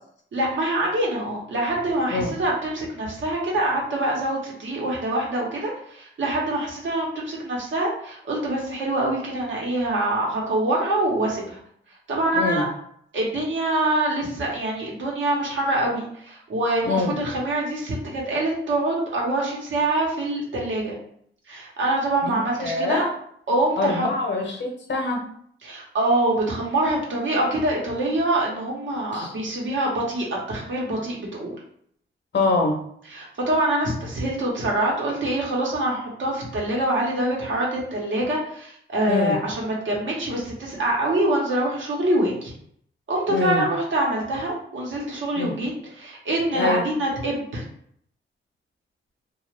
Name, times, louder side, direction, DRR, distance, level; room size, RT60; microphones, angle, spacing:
voice 1, 0.3-11.6 12.1-12.6 13.1-21.0 21.5-23.0 23.5-24.1 25.6-31.6 33.1-42.5 43.1-47.6, right 1 dB, 65° right, -3 dB, 1.0 m, -25 dB
voice 2, 12.3-12.6 16.8-17.2 22.2-23.0 23.8-25.2 29.1-29.4 32.3-32.8 39.1-39.4 43.3-43.7 45.4-45.6 46.5-46.8, left 3 dB, 60° left, 1 dB, 0.8 m, -24 dB
2.4 x 2.4 x 3.2 m, 0.65 s
cardioid pair, 95°, 21 cm